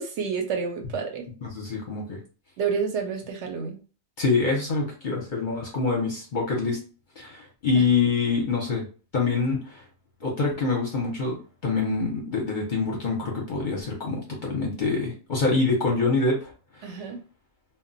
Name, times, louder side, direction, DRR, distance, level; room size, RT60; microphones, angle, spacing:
voice 1, 0.0-1.2 2.6-3.8 7.8-7.9 16.8-17.2, right 6 dB, 70° right, 4 dB, 0.8 m, -29 dB
voice 2, 1.4-2.2 4.2-6.8 7.2-8.8 9.1-9.8 10.2-11.4 11.6-16.5 16.8-17.0, left 4 dB, 50° left, -2 dB, 0.7 m, -25 dB
2.1 x 2.1 x 3.8 m, 0.37 s
omnidirectional pair, 1.3 m